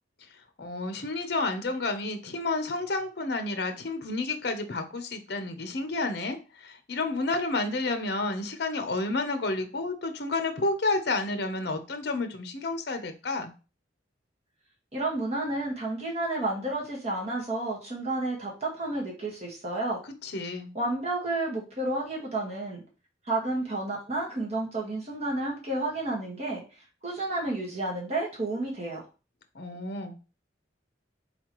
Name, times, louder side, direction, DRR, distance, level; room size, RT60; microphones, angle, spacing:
voice 1, 0.6-13.5 20.0-20.7 29.5-30.2, left 2 dB, 60° left, 8 dB, 0.7 m, -30 dB
voice 2, 14.9-20.0 20.7-22.8 23.2-26.6 27.0-29.0, right 2 dB, 35° right, -3 dB, 1.5 m, -31 dB
4.2 x 3.9 x 3.0 m, 0.32 s
head